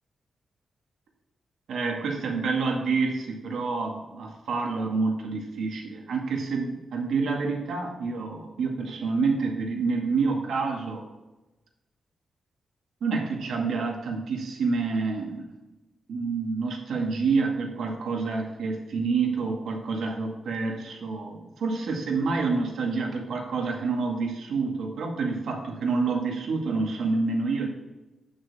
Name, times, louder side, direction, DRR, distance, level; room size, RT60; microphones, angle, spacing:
voice 1, 1.7-11.1 13.0-15.4 16.1-27.7, right 4 dB, 80° right, 0 dB, 2.1 m, -28 dB
9.1 x 6.3 x 4.2 m, 1.1 s
wide cardioid pair, 150°, 0 cm